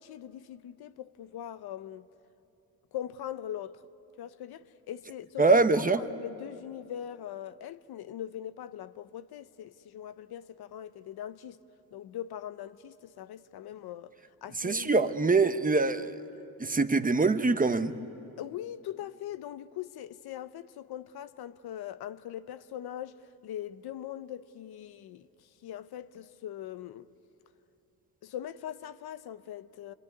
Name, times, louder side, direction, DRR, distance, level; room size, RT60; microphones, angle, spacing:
voice 1, 0.0-2.1 2.9-3.8 4.2-11.6 11.9-14.1 14.4-15.1 18.4-23.2 23.4-25.3 25.6-27.1 28.2-29.9, left 11 dB, 90° left, 0.7 m, -41 dB
voice 2, 5.4-6.0 14.6-16.1 16.6-17.9, right 3 dB, 20° right, 0.9 m, -24 dB
27.5 x 22.0 x 9.5 m
cardioid pair, 100°, 37 cm